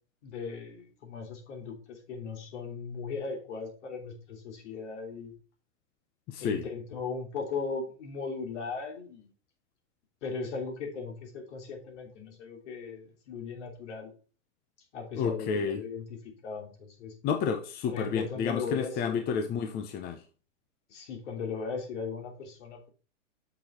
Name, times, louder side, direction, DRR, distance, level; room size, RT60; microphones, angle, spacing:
voice 1, 0.2-5.3 6.4-9.3 10.2-14.1 14.9-17.1 17.9-19.2 20.9-22.9, left 5 dB, 65° left, 3.2 m, -38 dB
voice 2, 6.3-6.6 15.2-15.8 17.2-20.2, left 6 dB, 25° left, 0.8 m, -30 dB
6.8 x 6.3 x 4.3 m
hypercardioid pair, 135°, 38 cm